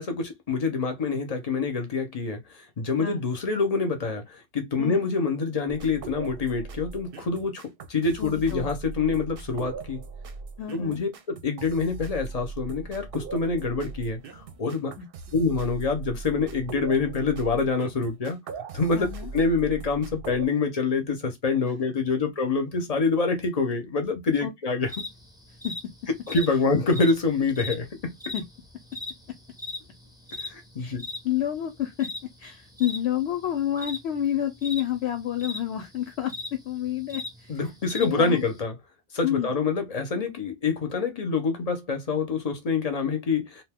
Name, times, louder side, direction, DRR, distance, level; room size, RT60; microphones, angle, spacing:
voice 1, 0.0-7.6 7.9-10.0 10.7-14.9 15.3-18.4 18.7-19.1 19.3-24.9 26.3-28.1 30.4-31.1 37.5-38.8 39.1-43.6, left 4 dB, 40° left, 0.6 m, -26 dB
sound 1, 5.7-20.5, right 4 dB, 60° right, 0.7 m, -40 dB
voice 2, 8.2-8.7 9.0-9.1 10.6-11.0 15.0-15.1 18.9-19.3 24.4-24.5 25.6-25.7 28.3-28.4 30.8-31.0 31.2-32.1 32.4-37.6 38.0-38.4 39.2-39.5, left 11 dB, 70° left, 0.8 m, -29 dB
sound 2, 24.9-38.6, left 3 dB, 5° right, 0.5 m, -38 dB
2.6 x 2.2 x 3.4 m
omnidirectional pair, 1.2 m